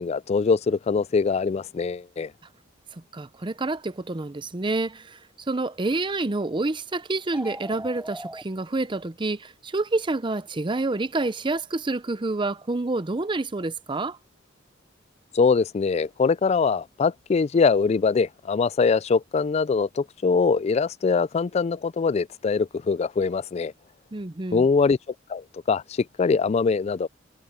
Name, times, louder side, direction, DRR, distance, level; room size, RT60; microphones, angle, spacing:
voice 1, 0.0-2.3 15.3-23.7 24.5-25.0 25.3-27.1, left 5 dB, 35° left, 0.3 m, -23 dB
voice 2, 2.9-5.2 5.5-14.2 24.1-24.7, right 2 dB, 25° right, 0.6 m, -28 dB
sound 1, 7.2-8.4, right 1 dB, 10° right, 2.8 m, -38 dB
head